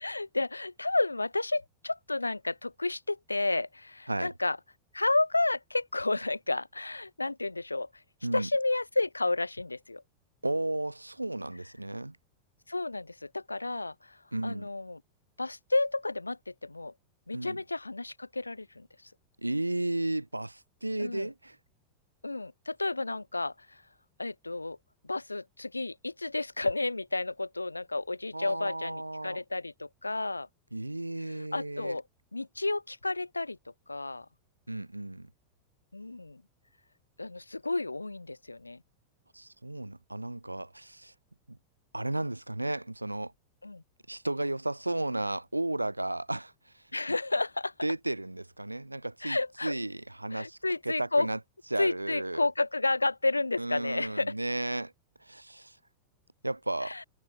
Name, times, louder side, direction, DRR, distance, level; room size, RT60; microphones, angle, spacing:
voice 1, 0.0-4.6 4.9-7.9 8.3-10.0 12.7-15.0 15.4-16.9 17.3-19.1 21.0-21.3 22.2-23.8 24.2-24.8 25.0-30.5 31.2-32.0 32.3-33.6 33.9-34.3 35.9-36.4 37.2-38.8 43.6-43.8 46.9-47.7 49.2-49.7 50.3-51.3 51.8-54.4 56.8-57.0, left 2 dB, 85° left, 1.1 m, -31 dB
voice 2, 10.4-12.2 14.3-14.7 17.3-17.6 19.4-21.6 28.3-29.4 30.7-32.0 34.7-35.3 39.3-41.1 41.5-41.6 41.9-43.3 44.1-46.8 47.8-50.6 50.8-51.4 51.7-52.4 53.6-54.9 55.2-55.8 56.4-56.9, right 2 dB, 85° right, 2.8 m, -34 dB
figure-of-eight pair, 90°, 0 cm